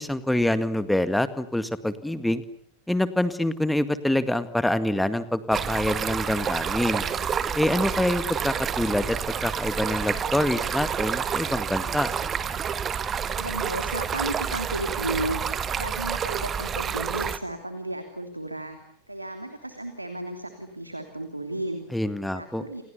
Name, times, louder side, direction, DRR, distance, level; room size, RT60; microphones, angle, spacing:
voice 1, 0.0-2.4 2.9-7.0 7.6-12.1 21.9-22.6, left 1 dB, 5° left, 12 dB, 2.0 m, -26 dB
Stream, 5.5-17.4, right 7 dB, 25° right, 1.8 m, -29 dB
voice 2, 13.3-15.4 15.8-18.8 19.1-21.9 22.3-22.8, right 1 dB, 85° right, 7 dB, 3.0 m, -33 dB
29.0 x 28.5 x 7.0 m, 0.64 s
figure-of-eight pair, 90°, 0 cm